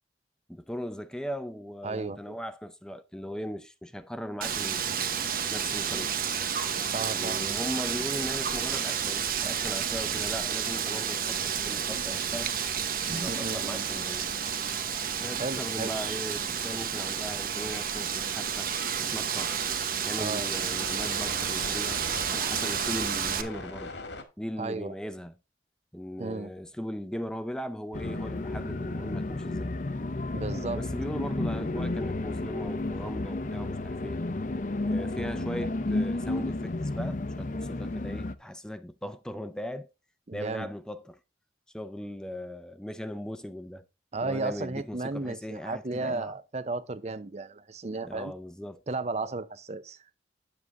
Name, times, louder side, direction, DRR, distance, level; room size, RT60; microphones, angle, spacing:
voice 1, 0.5-5.0 5.5-6.2 7.1-12.5 13.0-14.3 15.2-18.7 19.0-19.6 20.1-22.0 22.3-23.9 24.4-25.3 25.9-29.7 30.7-34.2 34.9-39.9 40.3-41.2 41.7-43.8 44.2-46.4 48.0-48.8, equal, 5° left, 0.5 m, -38 dB
voice 2, 1.8-2.4 6.9-7.5 13.1-13.8 15.2-15.9 20.2-20.5 24.6-24.9 26.2-26.5 30.3-30.8 40.3-40.7 44.1-48.3 48.9-50.0, right 3 dB, 40° right, 0.6 m, -34 dB
Wind, 4.4-23.4, right 8 dB, 55° right, 1.1 m, -31 dB
sound 1, 12.0-24.2, left 3 dB, 85° left, 1.7 m, -45 dB
sound 2, 27.9-38.3, left 2 dB, 45° left, 0.6 m, -32 dB
9.5 x 7.4 x 3.4 m
head